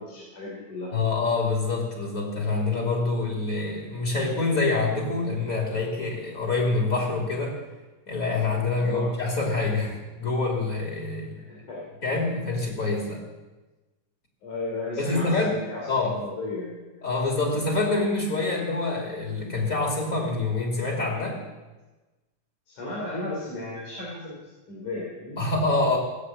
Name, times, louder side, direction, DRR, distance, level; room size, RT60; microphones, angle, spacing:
voice 1, 0.0-0.9 8.7-9.1 11.5-11.8 14.4-15.9 16.2-17.0 22.7-24.3 24.7-25.4, left 2 dB, 80° left, -5 dB, 5.0 m, -35 dB
voice 2, 0.9-7.6 8.1-11.4 12.0-13.2 15.0-16.2 17.0-21.4 25.4-26.0, left 3 dB, 25° left, -1 dB, 3.1 m, -26 dB
19.0 x 8.1 x 8.6 m, 1.2 s
omnidirectional pair, 3.5 m